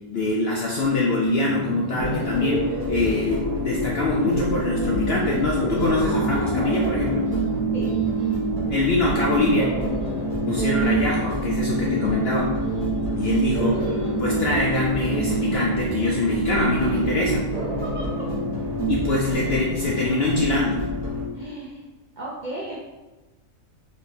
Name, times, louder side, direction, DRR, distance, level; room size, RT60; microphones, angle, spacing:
voice 1, 0.1-7.3 8.7-9.7 10.5-12.5 13.2-17.5 18.9-20.8, left 2 dB, 70° left, -2 dB, 0.5 m, -24 dB
sound 1, 1.4-19.8, right 5 dB, 90° right, 1.4 m, -29 dB
sound 2, 2.0-21.3, equal, 30° left, 1.0 m, -28 dB
voice 2, 17.8-18.3 21.3-21.9 22.2-22.8, right 1 dB, 60° right, -5 dB, 0.4 m, -35 dB
4.2 x 3.0 x 2.6 m, 1.2 s
omnidirectional pair, 1.5 m